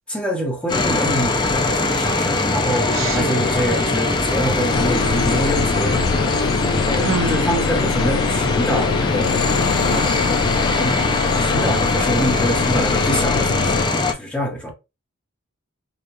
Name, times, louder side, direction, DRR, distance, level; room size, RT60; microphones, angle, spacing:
voice 1, 0.1-9.5 9.9-14.7, equal, 5° left, 1.2 m, -26 dB
sound 1, 0.7-14.1, left 2 dB, 20° left, 0.6 m, -21 dB
sound 2, 2.6-10.8, equal, 45° left, 2.1 m, -35 dB
voice 2, 2.9-3.3 7.0-7.4, right 3 dB, 70° right, 0.9 m, -25 dB
sound 3, 4.7-13.9, left 6 dB, 85° left, 0.3 m, -24 dB
5.0 x 2.5 x 3.1 m
head